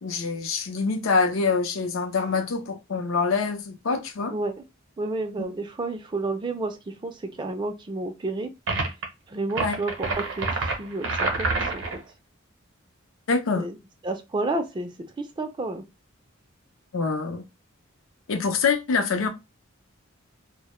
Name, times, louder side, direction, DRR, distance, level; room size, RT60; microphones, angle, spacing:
voice 1, 0.0-4.3 9.6-9.8 13.3-13.7 16.9-17.5 18.3-19.3, left 4 dB, 75° left, 0.5 m, -25 dB
voice 2, 4.3-4.6 5.0-8.5 9.3-12.0 13.6-13.8 14.0-15.8, right 2 dB, 20° right, 0.3 m, -31 dB
sound 1, 8.7-9.1 9.5-12.0, right 3 dB, 60° right, 0.6 m, -27 dB
2.1 x 2.0 x 2.9 m
head